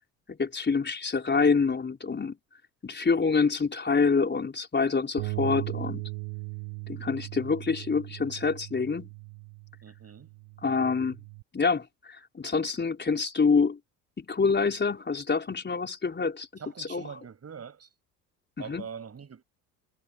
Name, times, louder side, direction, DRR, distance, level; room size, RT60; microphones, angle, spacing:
voice 1, 0.3-2.4 2.8-6.0 6.9-9.1 10.6-11.2 11.5-13.8 14.2-17.0 18.7-18.9, left 5 dB, 25° left, 4.6 m, -26 dB
Bass guitar, 5.2-11.4, right 36 dB, 65° right, 6.1 m, -38 dB
voice 2, 9.8-10.3 16.6-17.9 18.6-19.4, right 7 dB, 30° right, 7.6 m, -43 dB
hypercardioid pair, 65°, 46 cm